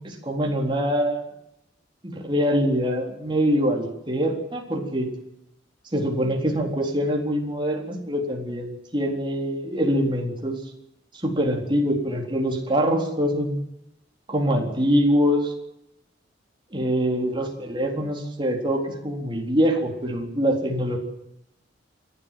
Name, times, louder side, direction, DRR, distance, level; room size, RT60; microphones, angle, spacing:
voice 1, 0.0-1.2 2.0-5.1 5.9-10.6 11.2-13.6 14.3-15.5 16.7-21.0, equal, 25° right, 1 dB, 4.0 m, -24 dB
29.5 x 12.5 x 7.7 m, 0.84 s
head